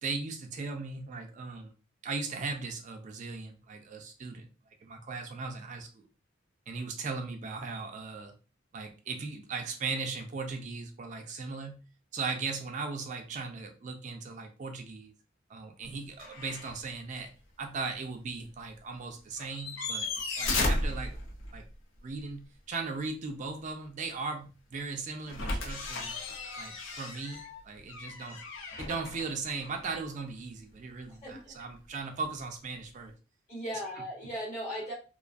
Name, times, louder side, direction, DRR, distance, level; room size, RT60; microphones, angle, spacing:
voice 1, 0.0-1.7 2.0-4.5 4.8-6.1 6.7-8.3 8.7-11.8 12.1-15.1 15.5-17.3 17.6-20.1 20.4-21.2 21.5-21.7 22.0-26.1 26.6-28.4 28.8-33.1, right 4 dB, 35° right, 4 dB, 0.3 m, -38 dB
sound 1, 16.2-16.8 17.2-17.3 19.4-21.7 25.3-30.1 32.2-32.3, left 2 dB, 65° left, 0.5 m, -35 dB
voice 2, 31.1-31.5 33.5-34.9, equal, 35° left, -2 dB, 1.0 m, -37 dB
2.4 x 2.2 x 2.4 m, 0.35 s
head